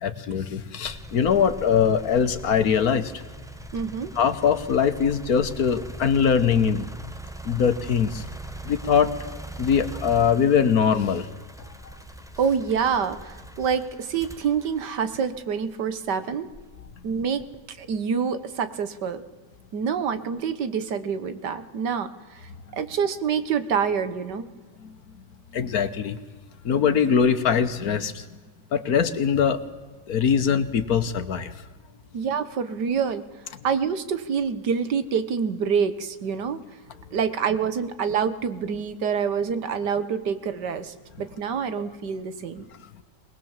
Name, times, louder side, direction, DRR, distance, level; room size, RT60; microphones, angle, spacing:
voice 1, 0.0-3.1 4.2-6.9 7.4-8.2 8.6-9.2 9.6-11.3 25.5-26.2 26.6-28.2 28.7-29.6 30.1-31.5, left 7 dB, 65° left, 12 dB, 1.5 m, -22 dB
sound 1, 0.8-15.9 16.5-17.7, right 2 dB, 5° right, 0.8 m, -41 dB
voice 2, 3.7-4.1 12.4-16.5 17.0-17.4 17.7-19.2 19.7-24.5 32.1-33.2 33.6-36.6 37.1-42.7, right 6 dB, 80° right, 12 dB, 1.9 m, -26 dB
21.5 x 20.5 x 7.3 m, 1.3 s
omnidirectional pair, 1.8 m